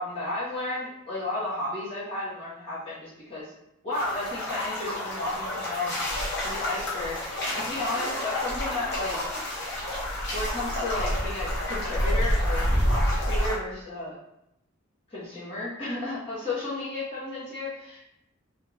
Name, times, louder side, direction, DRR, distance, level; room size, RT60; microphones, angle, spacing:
voice 1, 0.0-3.5 3.8-5.9 6.4-7.2 7.5-9.2 10.3-14.2 15.1-18.0, left 2 dB, 25° left, -11 dB, 1.2 m, -33 dB
sound 1, 3.9-13.5, equal, 55° left, 1.0 m, -28 dB
3.2 x 2.5 x 3.1 m, 0.83 s
head